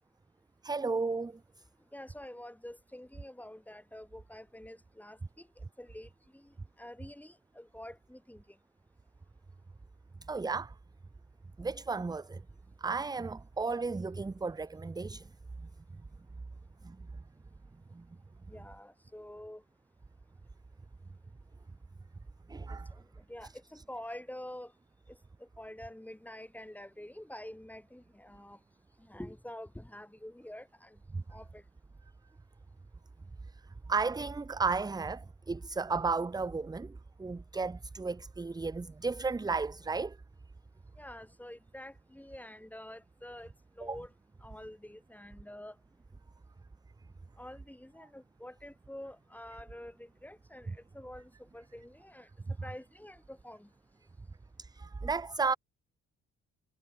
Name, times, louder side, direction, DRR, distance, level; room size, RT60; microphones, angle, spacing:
voice 1, 0.6-1.4 10.3-10.7 11.6-12.4 12.8-15.3 16.8-17.0 17.9-18.0 22.5-22.9 31.1-31.2 33.9-40.2 43.8-44.0 54.6-55.5, right 4 dB, 15° right, 0.6 m, -34 dB
voice 2, 1.9-5.2 5.8-6.4 6.8-8.4 18.5-19.6 23.3-24.7 25.6-28.6 29.1-30.9 31.3-31.6 41.0-43.5 43.8-44.1 44.4-45.7 47.4-50.7 50.9-52.3 52.6-53.7, left 1 dB, 5° left, 5.7 m, -47 dB
cardioid pair, 90°, 30 cm